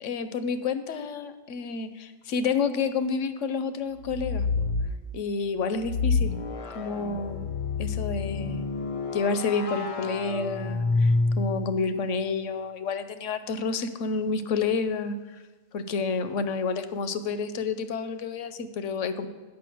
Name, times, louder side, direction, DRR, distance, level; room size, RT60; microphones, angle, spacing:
voice 1, 0.0-4.6 5.1-6.4 6.7-7.5 7.8-8.6 9.1-15.1 15.7-19.3, left 5 dB, 75° left, 11 dB, 1.0 m, -29 dB
sound 1, 4.0-5.0 5.8-11.8, left 3 dB, 45° left, 0.4 m, -28 dB
8.5 x 5.7 x 7.6 m, 1.3 s
omnidirectional pair, 1.3 m